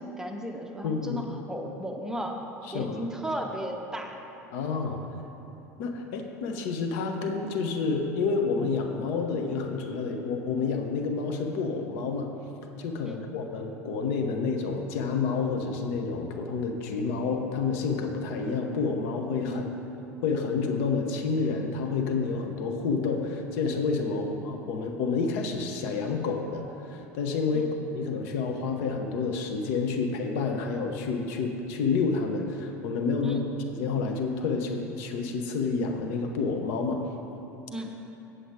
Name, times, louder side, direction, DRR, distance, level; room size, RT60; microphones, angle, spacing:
voice 1, 0.0-2.4 2.7-4.2 13.0-13.2 19.5-19.7 24.2-24.3 27.5-27.7 33.2-33.4 37.7-38.0, equal, 5° right, 2 dB, 0.8 m, -35 dB
voice 2, 0.8-1.2 2.6-3.0 4.5-5.0 5.8-12.3 12.8-19.7 20.2-33.4 33.7-37.0, left 4 dB, 55° left, 4 dB, 0.8 m, -29 dB
8.0 x 7.8 x 4.8 m, 3.0 s
figure-of-eight pair, 75°, 9 cm